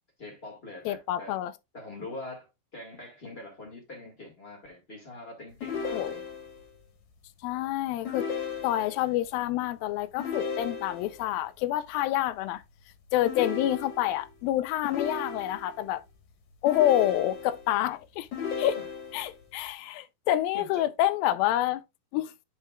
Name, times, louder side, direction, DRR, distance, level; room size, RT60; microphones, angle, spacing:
voice 1, 0.2-1.3 1.7-2.5 2.7-6.2 18.8-18.9 20.5-20.9, left 2 dB, 30° left, 1.1 m, -43 dB
voice 2, 0.9-1.5 5.9-6.2 7.4-8.3 8.6-12.6 13.1-16.0 16.6-18.3 18.6-18.8 19.1-21.8 22.1-22.3, left 13 dB, 85° left, 2.4 m, -27 dB
sound 1, 5.6-6.6 8.1-9.1 10.2-11.2 13.3-14.3 14.8-15.8 16.7-17.7 18.3-19.3, left 6 dB, 60° left, 2.4 m, -35 dB
10.0 x 4.8 x 2.3 m
omnidirectional pair, 4.1 m